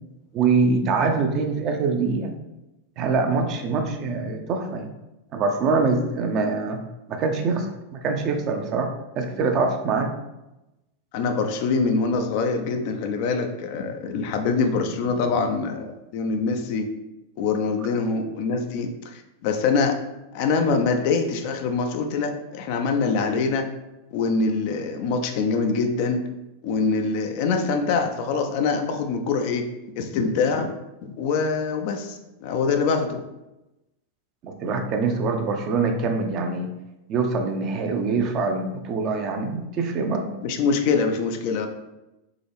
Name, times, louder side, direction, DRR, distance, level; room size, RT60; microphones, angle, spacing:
voice 1, 0.3-2.3 3.0-4.9 5.3-6.8 7.1-7.7 7.9-10.1 34.4-36.7 37.1-40.3, right 4 dB, 35° right, 4 dB, 0.6 m, -24 dB
voice 2, 11.1-16.9 17.4-20.0 20.3-23.7 24.1-26.3 26.6-29.7 30.0-30.8 31.0-33.2 40.4-41.7, left 4 dB, 45° left, 5 dB, 0.5 m, -24 dB
3.8 x 3.7 x 3.4 m, 0.97 s
figure-of-eight pair, 90°, 0 cm